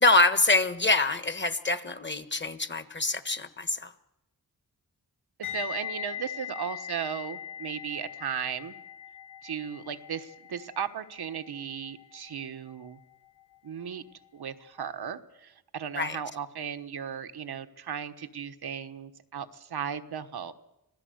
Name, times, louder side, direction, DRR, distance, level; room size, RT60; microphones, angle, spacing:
voice 1, 0.0-3.9 16.0-16.2, left 2 dB, 30° left, 11 dB, 1.4 m, -25 dB
sound 1, 5.4-14.4 14.6-14.9, left 9 dB, 90° left, 4.6 m, -42 dB
voice 2, 5.4-8.7 9.4-13.0 13.6-14.0 14.3-20.5, right 7 dB, 85° right, 9 dB, 1.2 m, -36 dB
26.0 x 17.0 x 7.9 m, 0.92 s
cardioid pair, 65°, 37 cm